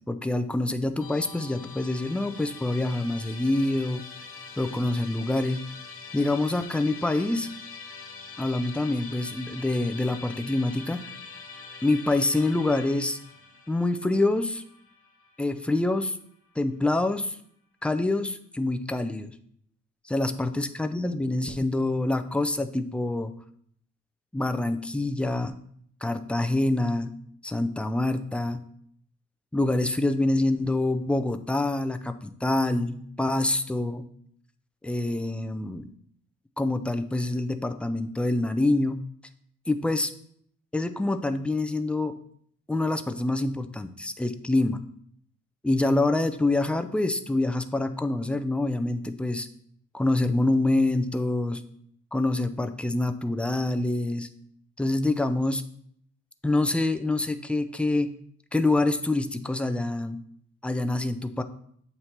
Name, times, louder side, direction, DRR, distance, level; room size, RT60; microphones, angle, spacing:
voice 1, 0.1-4.0 4.6-5.6 6.1-7.5 8.4-11.1 11.8-13.2 13.7-14.6 15.4-16.2 16.6-17.4 17.8-19.3 20.1-23.3 24.3-25.6 26.0-27.1 27.4-28.6 29.5-34.0 34.8-35.9 36.6-39.0 39.7-40.1 40.7-42.1 42.7-44.8 45.6-49.5 49.9-51.6 52.1-54.3 54.8-55.6 56.4-58.1 58.5-60.2 60.6-61.4, left 2 dB, 5° left, 9 dB, 0.4 m, -26 dB
Musical instrument, 1.0-16.2, left 5 dB, 45° left, 0.9 m, -44 dB
7.9 x 2.8 x 4.4 m, 0.65 s
cardioid pair, 90°, 30 cm